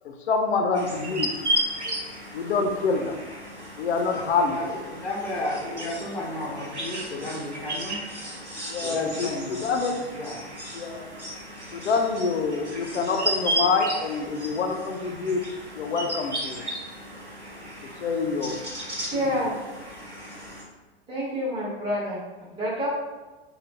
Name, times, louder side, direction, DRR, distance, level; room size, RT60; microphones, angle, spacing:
voice 1, 0.0-1.3 1.8-1.9 2.3-3.2 3.8-4.6 8.7-10.3 10.7-11.1 11.7-15.5 15.7-16.7 18.0-18.6 19.1-19.4, left 4 dB, 70° left, 4 dB, 0.5 m, -26 dB
sound 1, 0.7-20.6, right 1 dB, 90° right, 1.0 m, -34 dB
voice 2, 4.5-8.0 8.8-9.7 10.2-10.3, left 1 dB, 5° left, -5 dB, 0.6 m, -33 dB
voice 3, 19.1-19.6 21.1-22.2 22.6-22.9, equal, 15° right, -10 dB, 1.3 m, -28 dB
3.0 x 2.2 x 3.3 m, 1.2 s
figure-of-eight pair, 90°, 33 cm